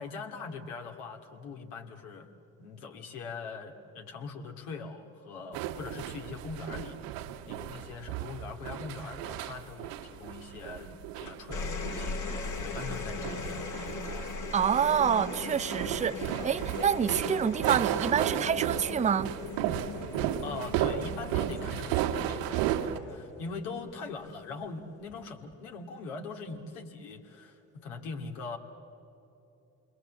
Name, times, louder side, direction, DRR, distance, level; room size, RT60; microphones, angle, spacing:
voice 1, 0.0-2.3 2.6-7.1 7.4-12.2 12.6-14.0 20.4-28.6, left 4 dB, 75° left, 2.5 m, -41 dB
sound 1, 5.5-23.0, right 12 dB, 75° right, 1.7 m, -34 dB
sound 2, 11.3-23.9 25.1-25.5, left 4 dB, 45° left, 2.0 m, -39 dB
voice 2, 14.5-19.3, right 8 dB, 15° right, 0.5 m, -27 dB
28.5 x 22.0 x 7.6 m
hypercardioid pair, 60°, 44 cm